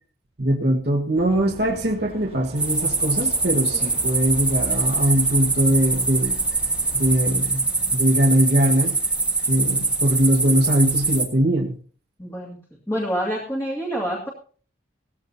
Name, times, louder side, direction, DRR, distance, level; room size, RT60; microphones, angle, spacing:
voice 1, 0.4-6.4 6.9-7.6 7.9-9.0 9.5-11.8, right 1 dB, 60° right, 0 dB, 1.6 m, -21 dB
Bird, 1.1-7.3, right 1 dB, 30° right, 1.8 m, -41 dB
sound 1, 2.6-11.2, right 3 dB, 5° right, 1.6 m, -23 dB
voice 2, 12.2-12.6 12.9-14.3, equal, 15° left, -3 dB, 2.3 m, -27 dB
18.0 x 15.0 x 2.8 m, 0.43 s
head